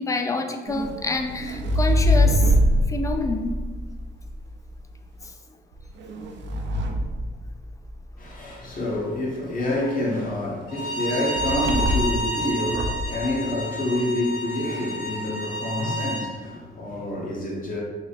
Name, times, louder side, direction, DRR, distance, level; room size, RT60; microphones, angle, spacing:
voice 1, 0.0-2.5 2.9-3.6 5.2-5.3, left 3 dB, 15° left, 0.4 m, -27 dB
sound 1, 0.7-4.8 5.7-8.1 11.4-12.2 12.6-13.1, equal, 65° right, 0.5 m, -24 dB
voice 2, 8.2-17.8, left 1 dB, 45° left, 1.1 m, -27 dB
Bowed string instrument, 10.7-16.3, right 1 dB, 85° left, 1.3 m, -30 dB
3.5 x 2.1 x 4.0 m
cardioid pair, 90°, 20 cm